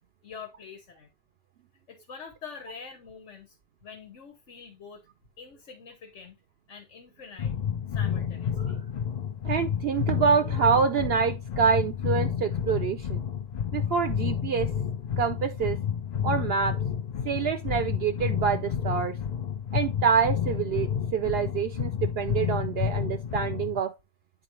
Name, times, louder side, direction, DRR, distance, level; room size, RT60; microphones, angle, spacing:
voice 1, 0.2-1.1 1.9-3.6 3.8-5.1 5.4-6.4 6.7-7.5 7.9-8.8, left 5 dB, 85° left, 1.5 m, -45 dB
sound 1, 7.4-23.8, left 8 dB, 50° left, 0.6 m, -30 dB
voice 2, 9.4-13.2 13.7-14.7 15.2-15.8 16.2-16.8 17.2-19.1 19.7-23.9, right 6 dB, 65° right, 0.7 m, -26 dB
8.8 x 4.1 x 3.1 m
omnidirectional pair, 1.2 m